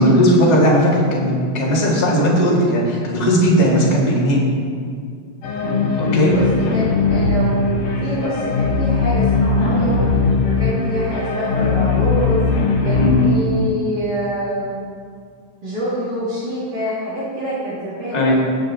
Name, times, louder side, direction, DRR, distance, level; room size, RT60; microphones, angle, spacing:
voice 1, 0.0-4.4 6.0-6.3 12.9-13.5 18.1-18.3, equal, 25° left, -4 dB, 0.8 m, -16 dB
sound 1, 5.4-13.3, left 3 dB, 85° left, 3.5 m, -19 dB
voice 2, 5.4-5.9 6.3-6.4 6.7-10.0 10.6-14.8 15.6-18.3, equal, 35° right, -10 dB, 2.2 m, -26 dB
18.0 x 6.7 x 3.7 m, 2.1 s
omnidirectional pair, 4.1 m